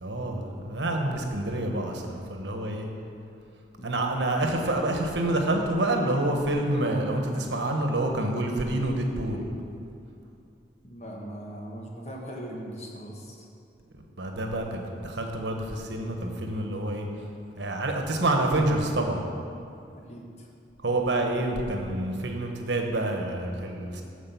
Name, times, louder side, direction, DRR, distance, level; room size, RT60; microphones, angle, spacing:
voice 1, 0.0-2.9 3.8-9.4 14.2-17.1 17.6-19.2 20.8-24.0, right 1 dB, 75° right, 3 dB, 1.2 m, -27 dB
voice 2, 3.8-4.1 10.8-13.5 20.1-20.5, right 1 dB, 35° left, 0 dB, 1.3 m, -40 dB
12.0 x 4.9 x 7.0 m, 2.5 s
head